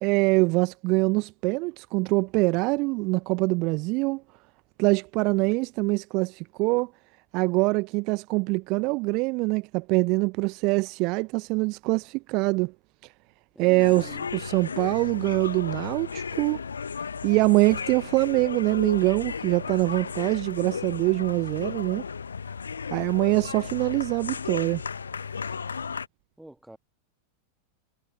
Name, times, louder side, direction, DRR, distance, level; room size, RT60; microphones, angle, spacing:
voice 1, 0.0-4.2 4.8-6.9 7.3-12.7 13.6-16.6 17.2-22.0 22.9-24.8, right 26 dB, 40° right, 0.6 m, -24 dB
voice 2, 13.5-14.3 26.4-26.8, right 1 dB, 5° right, 2.2 m, -45 dB
sound 1, 13.8-26.1, left 6 dB, 75° left, 0.8 m, -35 dB
figure-of-eight pair, 90°, 0 cm